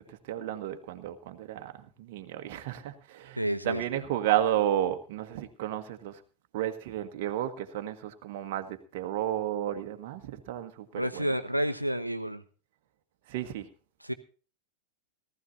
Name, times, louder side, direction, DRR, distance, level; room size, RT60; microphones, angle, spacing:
voice 1, 0.0-6.2 6.5-11.3 13.3-13.7, right 11 dB, 50° right, 6 dB, 1.5 m, -32 dB
voice 2, 3.4-4.0 10.9-12.4 14.0-14.1, right 1 dB, 90° right, 9 dB, 1.1 m, -30 dB
18.5 x 14.0 x 2.8 m, 0.37 s
figure-of-eight pair, 90°, 0 cm